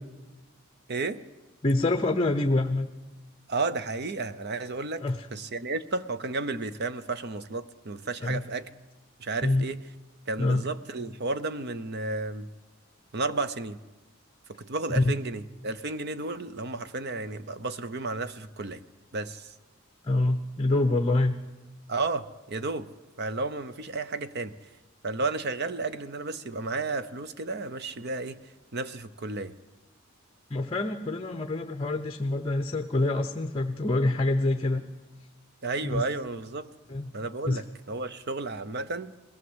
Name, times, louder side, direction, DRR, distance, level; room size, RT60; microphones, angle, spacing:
voice 1, 0.9-1.2 3.5-5.0 5.3-8.7 9.2-9.8 10.3-12.5 13.1-13.8 14.5-18.8 19.1-19.5 21.9-22.9 23.2-24.5 25.0-28.4 28.7-29.5 35.6-36.7 37.1-39.1, right 3 dB, 50° right, 13 dB, 0.8 m, -32 dB
voice 2, 1.6-2.9 5.0-5.3 8.2-8.4 9.4-9.7 10.4-10.6 15.0-15.1 20.0-21.3 30.5-34.8 35.8-36.0 36.9-37.1 37.4-37.6, left 2 dB, 25° left, 6 dB, 0.9 m, -26 dB
21.0 x 16.0 x 8.0 m, 1.1 s
head